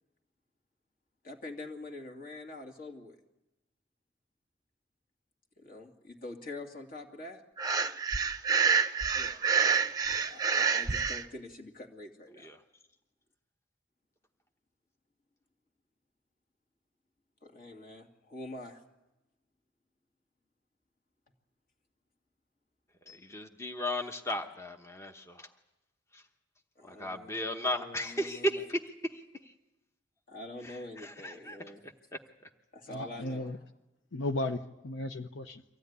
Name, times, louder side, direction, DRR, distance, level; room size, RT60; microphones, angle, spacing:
voice 1, 1.2-3.2 5.6-7.4 9.1-12.5 17.4-18.8 26.8-28.6 30.3-31.8 32.7-33.5, left 2 dB, 50° left, 2.5 m, -45 dB
Breathing, 7.6-11.2, right 6 dB, 20° right, 0.8 m, -27 dB
voice 2, 23.1-25.5 26.1-26.2 26.8-29.5 30.6-31.6 31.8-31.9, left 1 dB, 15° left, 0.9 m, -35 dB
voice 3, 32.9-33.6 34.1-35.6, left 2 dB, 80° left, 0.9 m, -35 dB
24.5 x 15.5 x 9.6 m
head